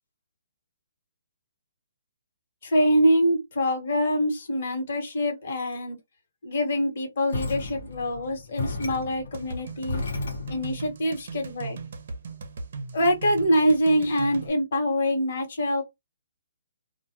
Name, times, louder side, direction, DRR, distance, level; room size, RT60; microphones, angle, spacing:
voice 1, 2.6-6.0 6.4-10.0 10.5-11.8 12.9-15.8, equal, 50° left, 1.2 m, -24 dB
sound 1, 7.3-10.8, left 3 dB, 65° left, 1.0 m, -34 dB
sound 2, 9.3-14.5, right 3 dB, 50° right, 0.6 m, -38 dB
2.2 x 2.2 x 2.8 m
hypercardioid pair, 165°, 0 cm